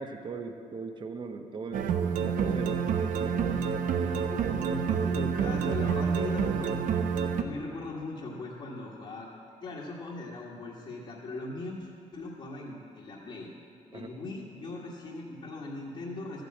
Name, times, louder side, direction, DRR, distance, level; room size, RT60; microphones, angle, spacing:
voice 1, 0.0-1.9 2.2-3.0 4.0-4.2 13.9-14.1, right 4 dB, 35° right, 6 dB, 0.9 m, -38 dB
sound 1, 1.7-7.4, right 6 dB, 75° right, 0.8 m, -28 dB
voice 2, 4.0-6.8 7.4-9.3 9.6-13.5 13.9-16.4, left 2 dB, 45° left, -5 dB, 1.7 m, -39 dB
14.0 x 9.1 x 7.6 m, 2.5 s
cardioid pair, 170°, 13 cm